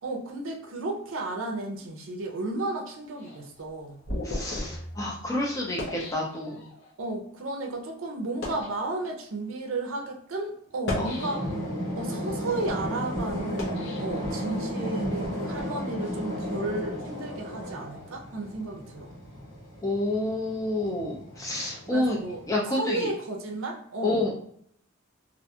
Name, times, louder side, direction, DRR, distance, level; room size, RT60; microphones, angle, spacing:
voice 1, 0.0-4.0 7.0-11.5 12.0-19.1 21.9-22.4 22.8-24.3, right 2 dB, 75° right, 2 dB, 0.5 m, -33 dB
sound 1, 3.2-6.9 7.6-7.7 8.2-8.8 9.6-9.7 10.7-11.8 12.3-14.8, left 1 dB, 55° left, 0.7 m, -36 dB
voice 2, 4.2-6.6 11.0-11.1 19.8-22.2 22.5-23.1 24.0-24.3, left 2 dB, 15° left, -2 dB, 0.4 m, -29 dB
sound 2, 11.2-22.5, equal, 80° left, 1.2 m, -34 dB
2.4 x 2.2 x 2.7 m, 0.66 s
head